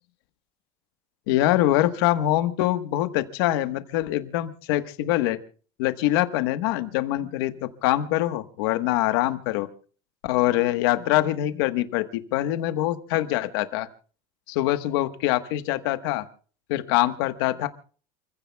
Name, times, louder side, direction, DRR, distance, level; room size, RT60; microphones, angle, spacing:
voice 1, 1.3-5.4 5.8-9.7 10.2-13.9 14.5-16.2 16.7-17.7, left 15 dB, 80° left, 9 dB, 1.3 m, -24 dB
29.0 x 15.5 x 2.3 m, 0.41 s
cardioid pair, 155°, 12 cm